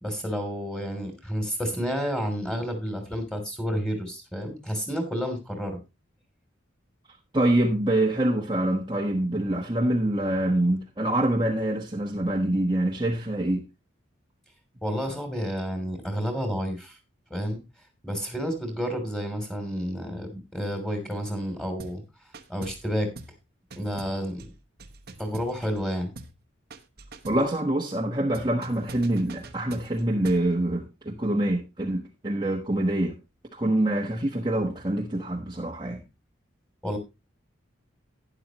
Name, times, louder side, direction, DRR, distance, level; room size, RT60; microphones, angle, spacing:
voice 1, 0.0-5.8 14.8-17.0 17.3-17.6 18.0-22.0 22.5-23.1 23.8-24.5 25.2-26.1 36.8-37.0, equal, 5° left, 3.1 m, -30 dB
voice 2, 7.3-13.7 27.2-33.2 33.5-36.0, right 1 dB, 25° right, 1.2 m, -25 dB
sound 1, 21.8-22.1 22.3-22.9 23.2-23.4 23.7-25.9 26.2-26.4 26.7-27.5 28.3-30.5, right 2 dB, 50° right, 1.1 m, -44 dB
12.0 x 10.5 x 3.0 m
head